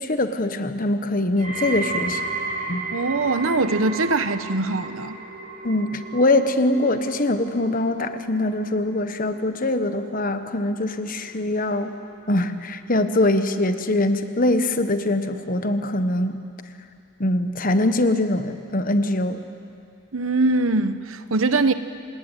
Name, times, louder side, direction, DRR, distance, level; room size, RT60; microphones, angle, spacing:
voice 1, 0.0-2.2 2.7-2.8 5.6-11.9 12.3-16.4 17.2-19.4, left 1 dB, 40° left, 9 dB, 1.3 m, -23 dB
sound 1, 1.4-12.5 12.8-13.3 14.1-14.2, right 3 dB, 40° right, 3.7 m, -34 dB
voice 2, 2.9-5.2 20.1-21.7, right 3 dB, 75° right, 11 dB, 1.1 m, -22 dB
28.5 x 19.5 x 9.2 m, 2.5 s
head